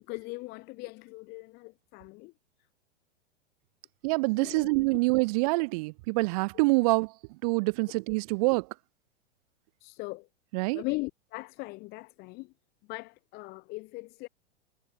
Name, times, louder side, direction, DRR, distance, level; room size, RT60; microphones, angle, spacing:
voice 1, 0.1-2.3 4.4-4.8 9.8-10.3 10.7-12.5 12.9-14.3, left 24 dB, 30° left, 0.7 m, -39 dB
voice 2, 4.0-7.1 7.4-8.7 10.5-10.8, right 27 dB, 35° right, 0.6 m, -26 dB
figure-of-eight pair, 100°, 35 cm